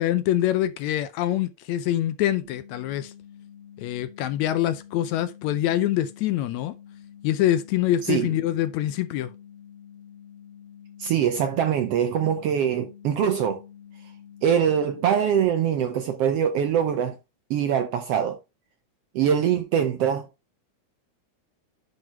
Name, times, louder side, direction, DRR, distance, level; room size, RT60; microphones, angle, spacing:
voice 1, 0.0-3.1 3.8-6.7 7.2-9.3, left 12 dB, 75° left, 1.8 m, -25 dB
sound 1, 2.4-15.5, left 9 dB, 40° right, 2.3 m, -48 dB
voice 2, 8.0-8.3 11.0-13.6 14.4-17.2 17.5-18.4 19.1-20.3, right 8 dB, 75° right, 1.4 m, -23 dB
11.0 x 3.9 x 4.5 m
omnidirectional pair, 3.5 m